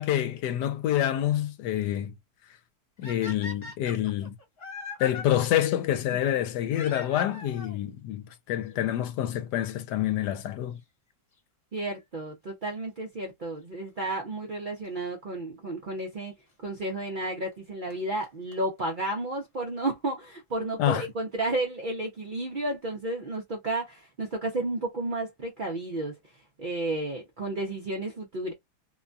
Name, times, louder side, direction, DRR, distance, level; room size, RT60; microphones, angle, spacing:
voice 1, 0.0-2.1 3.0-4.3 5.0-10.8 20.8-21.0, left 12 dB, 80° left, 1.2 m, -27 dB
sound 1, 3.0-5.2 6.7-7.8 8.7-8.8 9.5-9.6 9.8-9.9 11.8-12.0 14.8-14.9 16.0-16.1 17.5-17.6 17.9-18.0 18.2-18.3 18.5-18.6 18.8-18.9 19.0-19.1 19.4-19.5, left 4 dB, 40° left, 1.3 m, -40 dB
voice 2, 11.7-16.3 16.6-26.1 26.6-28.5, right 2 dB, 70° right, 0.4 m, -32 dB
2.9 x 2.3 x 2.5 m
omnidirectional pair, 1.8 m